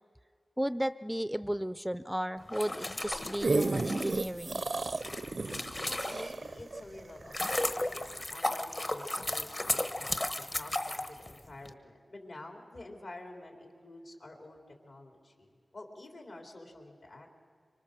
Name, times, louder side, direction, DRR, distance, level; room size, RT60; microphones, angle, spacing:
voice 1, 0.6-4.6, equal, 5° right, 13 dB, 0.5 m, -34 dB
sound 1, 2.4-6.5 7.0-11.7, left 1 dB, 35° left, 1.2 m, -35 dB
sound 2, 3.0-7.7 8.2-8.3, right 3 dB, 60° right, 0.6 m, -33 dB
voice 2, 5.9-17.3, left 2 dB, 65° left, 2 dB, 3.5 m, -49 dB
25.0 x 24.0 x 6.7 m, 2.1 s
wide cardioid pair, 70°, 0 cm